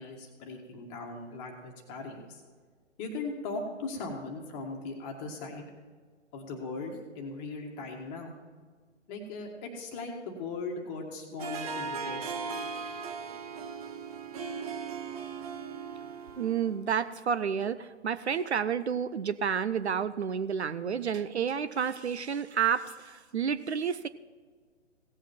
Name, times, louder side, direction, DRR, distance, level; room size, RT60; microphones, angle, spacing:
voice 1, 0.0-2.4 3.0-5.7 6.3-8.3 9.1-12.7, left 3 dB, 20° left, 2 dB, 1.7 m, -39 dB
Harp, 11.4-16.9, right 5 dB, 30° right, 0.8 m, -38 dB
voice 2, 16.3-24.1, right 7 dB, 65° right, 13 dB, 0.6 m, -30 dB
17.0 x 8.2 x 4.4 m, 1.6 s
figure-of-eight pair, 140°, 37 cm